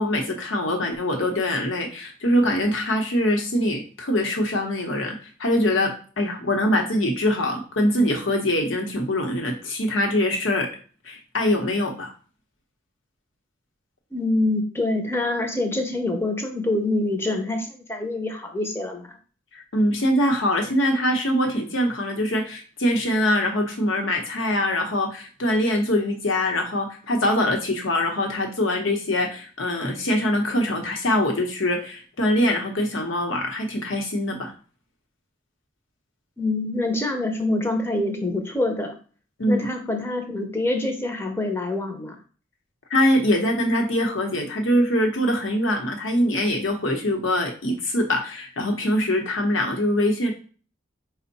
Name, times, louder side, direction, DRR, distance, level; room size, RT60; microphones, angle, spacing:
voice 1, 0.0-10.7 11.0-12.1 19.5-34.5 39.4-39.7 42.9-50.3, left 1 dB, 85° left, 3 dB, 0.9 m, -23 dB
voice 2, 14.1-19.2 36.4-38.9 39.5-42.2, left 2 dB, 10° left, 4 dB, 0.5 m, -25 dB
4.4 x 2.1 x 4.0 m, 0.41 s
head